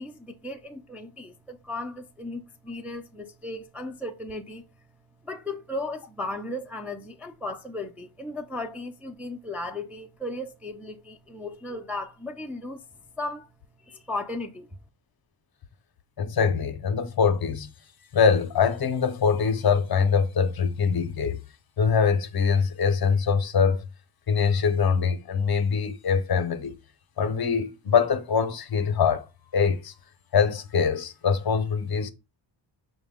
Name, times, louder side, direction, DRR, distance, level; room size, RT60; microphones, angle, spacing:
voice 1, 0.0-4.6 5.2-12.8 13.2-13.5 13.8-14.7, left 2 dB, 5° right, 0.3 m, -36 dB
voice 2, 16.2-17.7 18.1-21.4 21.8-23.9 24.3-26.7 27.2-29.3 29.5-29.9 30.3-32.1, left 6 dB, 50° left, 0.6 m, -23 dB
4.9 x 2.1 x 3.5 m
wide cardioid pair, 85°, 47 cm